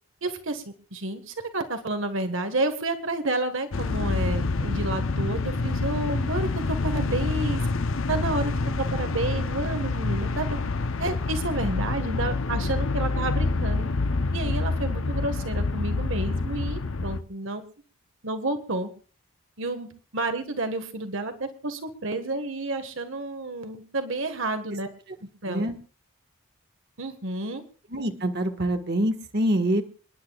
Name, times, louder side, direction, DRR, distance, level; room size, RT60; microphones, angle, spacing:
voice 1, 0.2-0.6 0.9-7.6 8.1-10.6 11.0-13.9 14.3-17.6 18.2-18.9 19.6-24.9 25.4-25.7 27.0-27.6, right 2 dB, 65° right, 8 dB, 1.6 m, -30 dB
sound 1, 3.7-17.2, left 3 dB, 65° left, 0.8 m, -27 dB
voice 2, 27.9-29.8, right 1 dB, 45° right, 5 dB, 1.7 m, -25 dB
29.0 x 10.5 x 2.4 m, 0.38 s
head